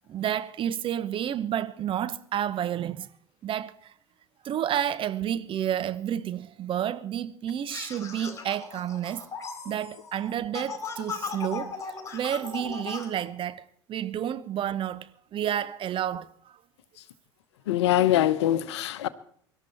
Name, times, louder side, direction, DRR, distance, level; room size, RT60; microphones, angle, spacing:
voice 1, 0.1-3.1 3.4-3.9 4.4-9.3 9.6-11.8 12.1-16.6, right 10 dB, 35° right, 0.9 m, -30 dB
sound 1, 7.7-13.1, left 5 dB, 20° left, 4.0 m, -38 dB
voice 2, 17.7-19.1, left 13 dB, 65° left, 0.9 m, -23 dB
24.0 x 12.0 x 4.3 m
figure-of-eight pair, 70°, 15 cm